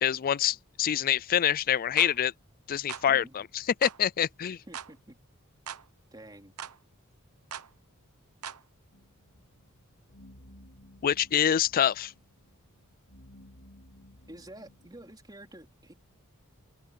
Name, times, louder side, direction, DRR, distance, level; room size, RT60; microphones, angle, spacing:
voice 1, 0.0-2.3 2.7-4.6 11.0-12.1, left 9 dB, 40° left, 0.4 m, -26 dB
sound 1, 2.0-2.2 2.9-3.1 3.8-4.0 4.7-4.9 5.7-5.9 6.6-6.8 7.5-7.7 8.4-8.6, right 8 dB, 90° right, 1.0 m, -40 dB
voice 2, 4.7-5.2 6.1-6.5 14.3-15.9, right 1 dB, 20° right, 3.9 m, -49 dB
sound 2, 8.9-15.1, left 1 dB, 80° left, 3.8 m, -56 dB
open air
head